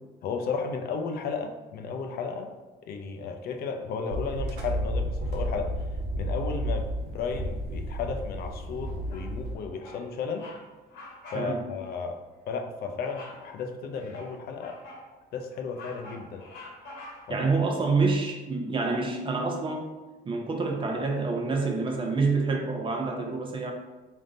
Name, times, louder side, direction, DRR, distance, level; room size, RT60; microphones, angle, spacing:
voice 1, 0.2-2.5 2.8-5.7 6.2-10.5 11.3-14.8 15.3-16.4 17.3-17.5, left 5 dB, 65° left, 5 dB, 0.5 m, -34 dB
sound 1, 4.1-9.5, equal, 80° right, 0.8 m, -32 dB
Bird vocalization bird call bird song, 9.1-9.5 9.8-10.1 10.3-10.6 10.9-11.5 11.8-12.0 13.0-13.4 13.9-15.1 15.5-17.4, left 2 dB, 90° left, 1.1 m, -45 dB
voice 2, 17.3-19.9 20.2-23.7, right 3 dB, 30° right, 2 dB, 0.6 m, -27 dB
3.6 x 2.6 x 3.8 m, 1.2 s
cardioid pair, 110°, 17 cm